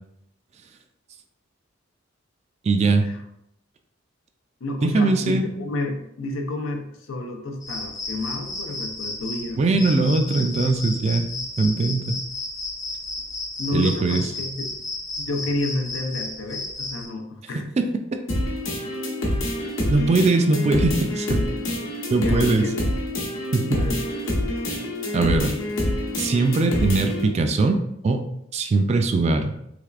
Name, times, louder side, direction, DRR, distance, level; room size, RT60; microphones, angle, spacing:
voice 1, 2.6-3.1 4.8-5.4 9.6-11.3 11.6-12.1 13.7-14.2 19.9-21.4 22.1-22.7 23.5-23.9 25.1-25.5 26.2-27.8 28.0-28.3 28.5-29.5, right 3 dB, 35° right, 6 dB, 0.3 m, -21 dB
voice 2, 4.6-9.6 13.6-14.7 15.2-17.7 22.2-22.8 23.8-24.0, left 2 dB, 90° left, 4 dB, 0.5 m, -30 dB
sound 1, 7.6-17.1, left 2 dB, 20° left, 0.5 m, -33 dB
sound 2, 18.3-27.3, left 1 dB, 70° left, 0.9 m, -26 dB
3.3 x 3.2 x 2.4 m, 0.77 s
head